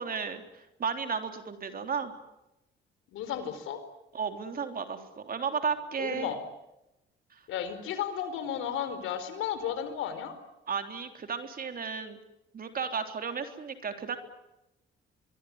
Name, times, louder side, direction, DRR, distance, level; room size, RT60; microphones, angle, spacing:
voice 1, 0.0-2.1 4.1-6.3 7.3-7.4 10.7-12.2 12.5-14.2, right 6 dB, 45° right, 6 dB, 3.6 m, -34 dB
voice 2, 3.1-3.8 6.0-6.4 7.5-10.3, left 9 dB, 90° left, 11 dB, 4.5 m, -33 dB
24.0 x 23.5 x 9.6 m, 0.91 s
cardioid pair, 90°, 20 cm